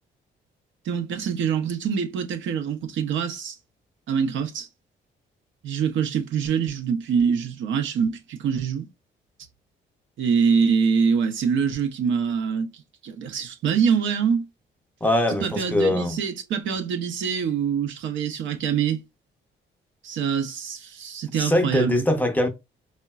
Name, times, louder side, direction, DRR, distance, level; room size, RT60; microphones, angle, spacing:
voice 1, 0.8-3.6 4.1-4.7 5.6-8.9 10.2-12.7 13.0-14.5 15.3-19.0 20.0-22.0, right 6 dB, 75° right, 0.6 m, -24 dB
voice 2, 15.0-16.2 21.3-22.5, left 1 dB, 10° left, 0.6 m, -22 dB
3.7 x 2.1 x 2.2 m
cardioid pair, 90°, 20 cm